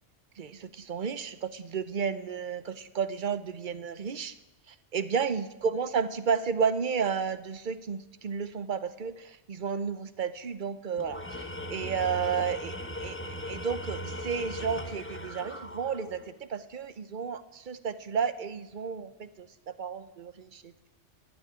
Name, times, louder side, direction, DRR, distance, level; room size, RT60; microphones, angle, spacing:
voice 1, 0.4-4.3 4.7-13.2 13.5-19.5 19.8-20.7, right 6 dB, 50° right, 13 dB, 0.8 m, -32 dB
Tools, 11.0-16.3, equal, 10° left, 0.9 m, -38 dB
12.0 x 7.7 x 9.9 m, 0.92 s
omnidirectional pair, 1.2 m